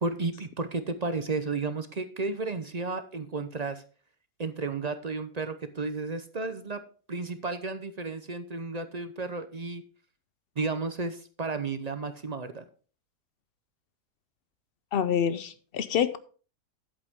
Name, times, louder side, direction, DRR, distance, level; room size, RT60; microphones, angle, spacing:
voice 1, 0.0-3.8 4.4-6.8 7.1-9.8 10.6-12.6, right 3 dB, 40° right, 0.6 m, -33 dB
voice 2, 14.9-16.2, left 8 dB, 85° left, 0.5 m, -27 dB
11.5 x 8.1 x 3.6 m
omnidirectional pair, 1.7 m